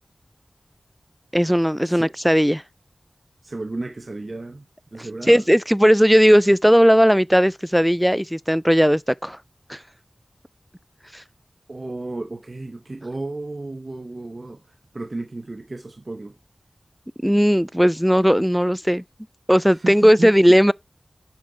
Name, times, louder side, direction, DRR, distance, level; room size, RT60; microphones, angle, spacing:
voice 1, 1.3-2.6 5.3-9.4 9.7-9.8 11.1-11.2 17.2-19.0 19.5-20.7, equal, ahead, 0.3 m, -17 dB
voice 2, 3.4-4.6 4.9-5.4 11.7-16.4 19.7-20.6, right 2 dB, 55° right, 0.9 m, -33 dB
8.4 x 5.5 x 2.8 m
wide cardioid pair, 45°, 0 cm